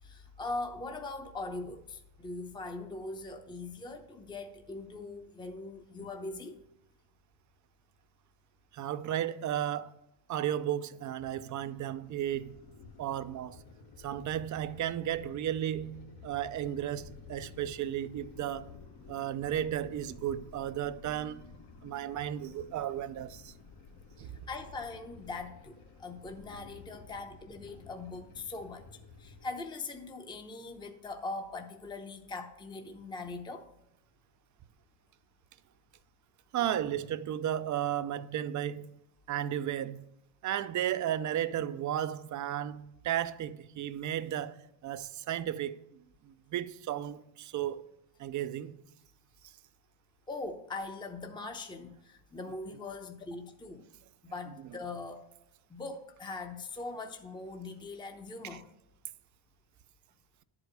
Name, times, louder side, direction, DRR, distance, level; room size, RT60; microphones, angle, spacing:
voice 1, 0.0-6.6 24.2-28.9 29.2-33.7 50.3-53.9 54.2-55.3 55.7-58.7, left 3 dB, 10° left, 0.7 m, -41 dB
voice 2, 8.7-10.0 10.3-12.6 13.0-13.6 14.0-18.7 19.1-21.4 21.8-23.5 24.2-24.3 36.5-39.0 39.3-40.1 40.4-47.8 48.2-48.8 58.5-58.6, right 11 dB, 45° right, 0.5 m, -34 dB
sound 1, 10.8-29.5, left 5 dB, 65° left, 1.2 m, -52 dB
10.0 x 4.9 x 6.5 m
cardioid pair, 100°, 43 cm